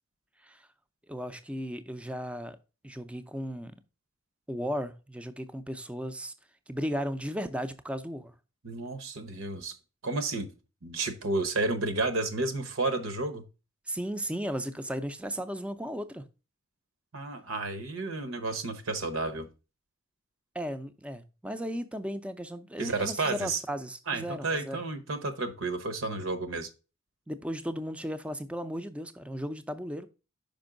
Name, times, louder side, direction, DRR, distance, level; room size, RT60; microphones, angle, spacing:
voice 1, 1.1-2.6 2.8-3.7 4.5-6.3 6.7-8.3 13.9-16.2 20.5-24.8 27.3-30.1, equal, 5° right, 0.5 m, -35 dB
voice 2, 8.6-9.7 10.0-10.5 10.8-13.4 17.1-19.5 22.8-23.6 24.1-26.7, right 3 dB, 75° right, 1.0 m, -31 dB
5.3 x 5.2 x 3.7 m
head